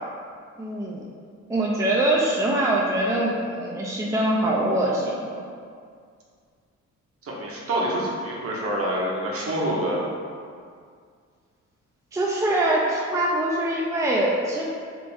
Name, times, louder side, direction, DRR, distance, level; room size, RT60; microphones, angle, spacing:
voice 1, 0.6-1.0 1.5-5.4 12.1-14.6, right 1 dB, 10° right, -3 dB, 0.4 m, -23 dB
voice 2, 7.2-10.0, right 1 dB, 50° right, -3 dB, 0.9 m, -26 dB
3.4 x 2.5 x 3.2 m, 2.1 s
cardioid pair, 90°, 30 cm